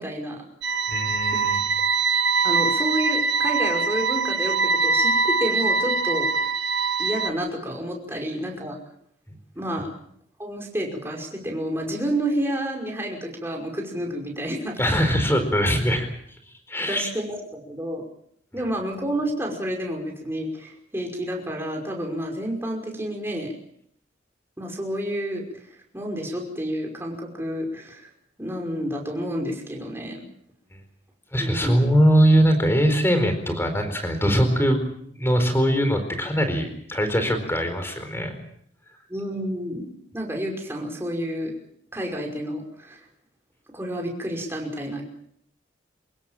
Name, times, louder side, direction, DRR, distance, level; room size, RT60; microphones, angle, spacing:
voice 1, 0.0-0.9 2.4-6.3 7.0-8.8 9.6-9.9 10.4-15.1 16.9-18.0 18.5-23.5 24.6-25.4 25.9-28.1 28.4-30.3 31.4-31.8 39.1-41.5 41.9-43.0 43.7-45.0, equal, 15° right, 0 dB, 5.5 m, -30 dB
sound 1, 0.6-7.3, right 4 dB, 65° right, 1.6 m, -23 dB
voice 2, 0.9-1.6 14.8-16.1 16.7-17.1 31.3-34.8 35.2-38.4, equal, 15° left, 8 dB, 4.4 m, -21 dB
28.0 x 17.0 x 7.3 m, 0.68 s
head